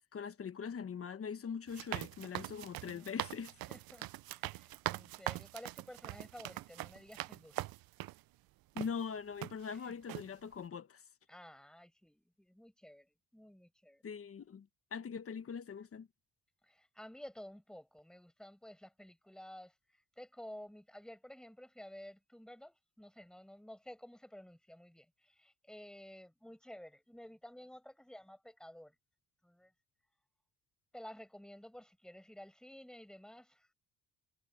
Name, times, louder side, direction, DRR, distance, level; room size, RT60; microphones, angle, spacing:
voice 1, 0.1-3.6 8.7-11.0 14.0-16.1, left 6 dB, 35° left, 1.3 m, -42 dB
sound 1, 1.7-8.2 8.8-8.9 9.4-9.8 10.1-10.3, right 17 dB, 70° right, 0.5 m, -42 dB
voice 2, 3.7-7.7 9.7-9.9 11.3-13.1 13.3-14.0 16.6-28.9 29.4-29.7 30.9-33.7, left 1 dB, ahead, 5.4 m, -53 dB
cardioid pair, 140°, 37 cm